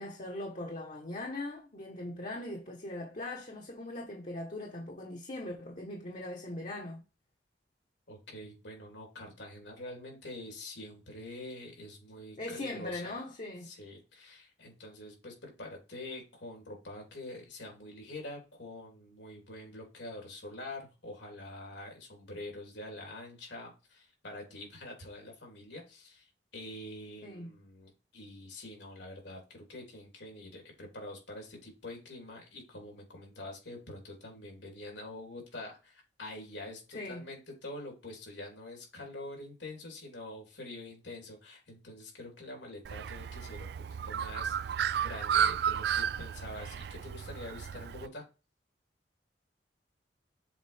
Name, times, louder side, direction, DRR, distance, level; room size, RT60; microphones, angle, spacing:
voice 1, 0.0-7.0 12.4-13.7 27.2-27.5 36.9-37.2, left 1 dB, 45° left, 1.2 m, -40 dB
voice 2, 8.1-13.1 13.6-43.7 44.0-48.2, left 1 dB, 85° left, 3.4 m, -46 dB
Bird, 42.8-48.1, right 8 dB, 65° right, 0.3 m, -33 dB
7.3 x 4.0 x 3.4 m
head